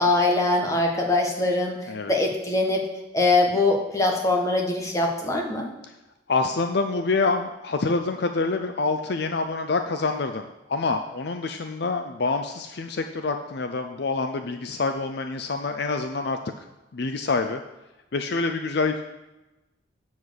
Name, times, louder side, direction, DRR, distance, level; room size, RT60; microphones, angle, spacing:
voice 1, 0.0-1.8 2.1-2.8 3.1-5.6, left 2 dB, 15° left, 0 dB, 1.5 m, -22 dB
voice 2, 6.3-16.4 16.9-17.6 18.1-19.0, left 3 dB, 55° left, 7 dB, 0.5 m, -26 dB
7.7 x 7.2 x 6.4 m, 0.99 s
head